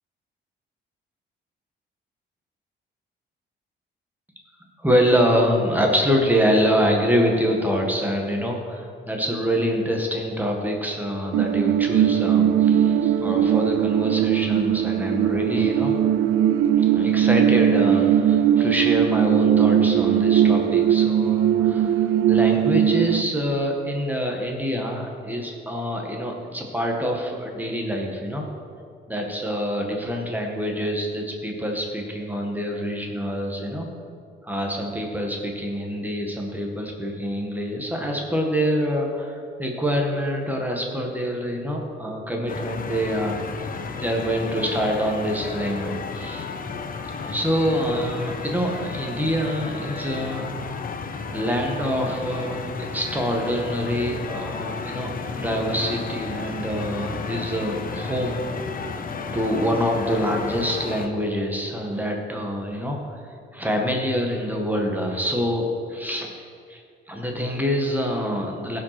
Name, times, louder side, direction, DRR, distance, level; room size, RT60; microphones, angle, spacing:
voice 1, 4.8-16.0 16.8-28.5 29.1-33.9 34.4-43.4 44.0-46.5 47.2-50.7 51.3-52.6 52.9-58.4 59.3-63.2 63.5-66.3 66.7-66.8 67.1-68.8, equal, 10° right, 1 dB, 1.8 m, -25 dB
sound 1, 11.3-23.2, right 9 dB, 80° right, 0.5 m, -19 dB
sound 2, 42.5-61.1, left 5 dB, 45° left, 1.0 m, -33 dB
16.0 x 5.6 x 6.0 m, 2.3 s
cardioid pair, 90°, 20 cm